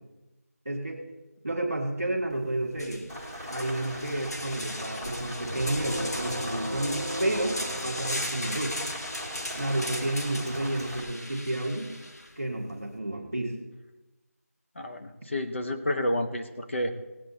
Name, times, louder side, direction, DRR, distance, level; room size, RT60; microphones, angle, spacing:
voice 1, 0.6-1.0 1.4-3.0 3.5-8.8 9.5-11.9 12.3-13.5, right 1 dB, ahead, -13 dB, 0.4 m, -31 dB
sound 1, 2.3-2.4 2.7-12.3, left 1 dB, 85° left, 1.8 m, -38 dB
Rain, 3.1-11.0, equal, 15° left, 1.6 m, -40 dB
sound 2, 5.5-8.8, right 1 dB, 50° right, 1.2 m, -37 dB
voice 2, 14.8-16.9, left 1 dB, 50° left, 5 dB, 1.0 m, -30 dB
17.5 x 8.4 x 4.2 m, 1.1 s
figure-of-eight pair, 175°, 9 cm